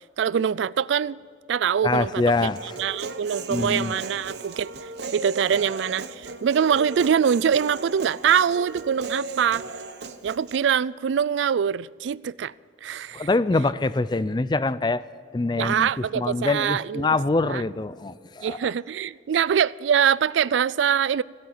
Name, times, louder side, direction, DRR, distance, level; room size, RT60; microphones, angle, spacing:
voice 1, 0.2-1.2 1.5-2.2 2.8-4.7 5.1-9.7 10.2-12.5 12.8-13.3 15.6-17.1 17.4-17.6 18.4-21.2, right 8 dB, 85° right, 0.3 m, -23 dB
voice 2, 1.8-2.8 3.5-3.9 13.1-15.0 15.3-18.7, left 3 dB, 25° left, 0.4 m, -24 dB
Human voice, 2.6-10.6, right 3 dB, 65° right, 0.9 m, -36 dB
16.0 x 8.7 x 9.4 m
head